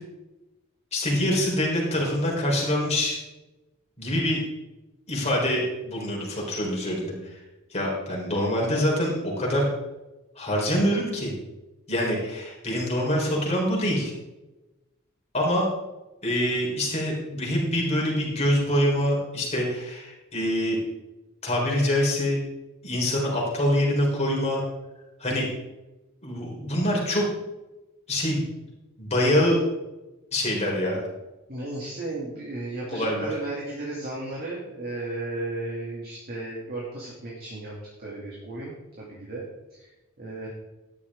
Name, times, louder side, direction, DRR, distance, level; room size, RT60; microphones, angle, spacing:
voice 1, 0.9-3.2 4.0-4.4 5.1-7.4 7.7-9.7 10.4-11.3 11.9-14.1 15.3-15.7 16.2-20.8 21.4-22.4 22.8-24.6 25.2-25.5 26.2-27.2 28.1-28.4 29.0-29.6 30.3-31.0 32.9-33.3, left 1 dB, 30° left, -3 dB, 4.0 m, -25 dB
voice 2, 31.5-37.7 38.0-39.4 39.8-39.9 40.2-40.5, right 2 dB, 45° right, -4 dB, 2.6 m, -34 dB
13.0 x 10.5 x 3.7 m, 1.1 s
head